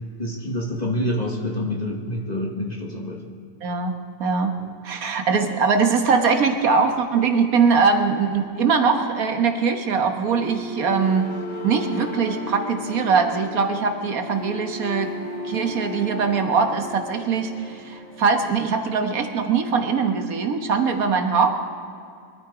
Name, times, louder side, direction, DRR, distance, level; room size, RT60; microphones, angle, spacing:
voice 1, 0.2-3.2, left 1 dB, 25° left, 1 dB, 1.3 m, -27 dB
voice 2, 3.6-3.9 4.2-4.6 4.8-11.2 11.6-15.1 15.5-21.6, right 5 dB, 55° right, 5 dB, 1.6 m, -21 dB
sound 1, 10.3-18.3, left 1 dB, 65° left, 3.5 m, -35 dB
22.5 x 12.5 x 5.0 m, 2.4 s
omnidirectional pair, 1.8 m